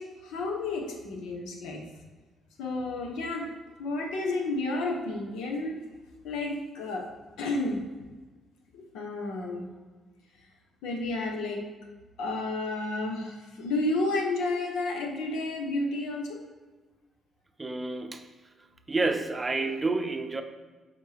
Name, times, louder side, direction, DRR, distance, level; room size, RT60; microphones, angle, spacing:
voice 1, 0.0-1.8 2.6-3.5 3.8-5.8 6.2-7.1 7.4-7.8 8.7-9.7 10.8-11.6 12.2-16.4, left 2 dB, 90° left, 2 dB, 1.0 m, -31 dB
voice 2, 17.6-18.3 18.9-20.4, right 3 dB, 20° right, 6 dB, 0.6 m, -29 dB
7.6 x 4.3 x 3.4 m, 1.3 s
cardioid pair, 90°, 0 cm